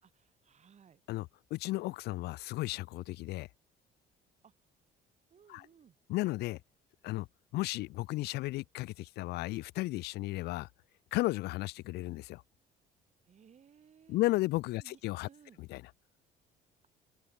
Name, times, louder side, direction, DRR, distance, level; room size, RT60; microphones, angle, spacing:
voice 1, 0.0-1.0 4.4-4.5 5.3-6.0 13.3-14.2 14.7-15.6, right 7 dB, 40° right, 4.6 m, -61 dB
voice 2, 1.1-3.5 5.5-5.7 6.1-6.6 7.0-7.3 7.5-10.7 11.1-12.4 14.1-15.3 15.6-15.8, left 19 dB, 75° left, 0.4 m, -34 dB
open air
cardioid pair, 110°, 17 cm